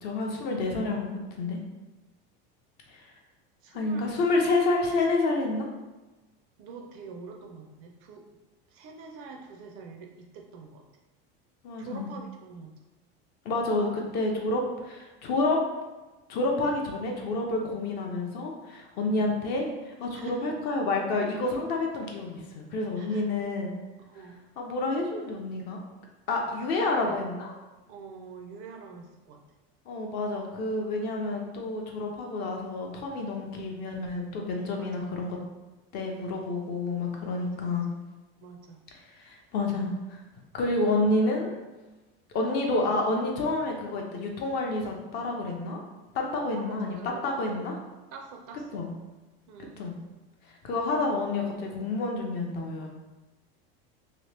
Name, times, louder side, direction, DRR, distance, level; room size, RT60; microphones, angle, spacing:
voice 1, 0.0-1.6 2.9-3.1 3.7-5.7 11.6-12.1 13.4-15.6 16.3-23.7 24.6-25.8 26.3-27.5 29.9-35.4 35.9-37.9 39.0-40.2 40.5-41.5 42.3-45.8 46.1-47.8 48.7-48.9 49.8-49.9 50.5-52.9, left 2 dB, 35° left, 1 dB, 0.4 m, -29 dB
voice 2, 3.6-4.1 6.6-8.3 8.7-10.8 11.8-12.8 19.0-19.3 20.1-20.5 23.0-23.2 24.1-24.4 26.8-27.2 27.9-29.4 34.8-35.1 37.4-38.0 38.4-38.8 46.3-47.9 48.1-48.9 49.5-49.8, right 4 dB, 45° right, 2 dB, 0.4 m, -45 dB
2.9 x 2.8 x 3.2 m, 1.1 s
cardioid pair, 170°, 30 cm